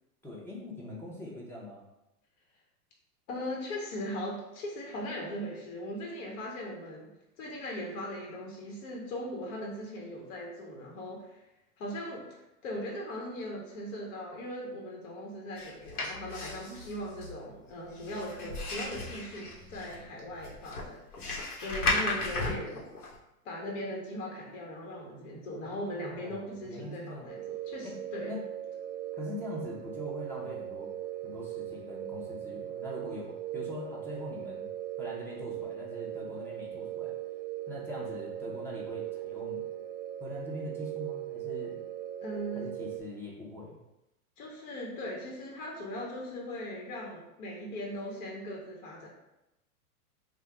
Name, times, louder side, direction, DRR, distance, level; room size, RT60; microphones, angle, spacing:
voice 1, 0.2-1.8 25.7-27.3 27.8-28.0 28.3-28.4 29.1-30.9 31.2-34.7 35.0-37.1 37.7-39.6 40.2-41.8 42.5-43.8, left 1 dB, 5° left, -5 dB, 0.7 m, -42 dB
voice 2, 3.3-7.1 7.4-11.4 11.8-21.2 21.6-22.8 23.4-28.4 42.2-42.7 44.4-49.1, equal, 55° left, -2 dB, 1.2 m, -39 dB
sound 1, 15.6-23.1, left 3 dB, 75° left, 1.2 m, -35 dB
sound 2, 27.3-43.0, right 12 dB, 55° right, 0.5 m, -39 dB
3.3 x 2.4 x 3.7 m, 0.91 s
hypercardioid pair, 115°, 45 cm